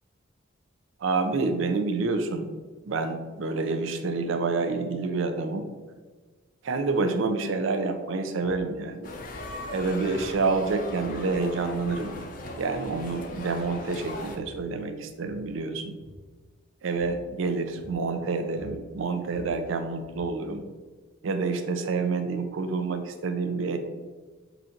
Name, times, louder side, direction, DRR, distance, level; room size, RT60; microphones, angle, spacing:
voice 1, 1.0-2.5 2.9-5.7 6.6-9.1 9.7-12.2 12.6-16.0 16.8-20.7 21.2-23.8, right 3 dB, 80° right, 7 dB, 0.4 m, -28 dB
sound 1, 8.4-8.7 9.3-9.6 10.1-10.6 10.9-11.4 11.8-12.1 12.5-13.1 13.5-13.9 14.2-14.7 15.1-15.5 16.0-16.3 17.0-17.3 17.8-18.1 18.4-20.5, left 1 dB, 35° right, 0.6 m, -49 dB
sound 2, 9.0-14.4, left 1 dB, 40° left, 0.4 m, -38 dB
Human voice, 10.9-12.6, equal, 90° left, 0.8 m, -48 dB
3.9 x 2.4 x 4.3 m, 1.3 s
head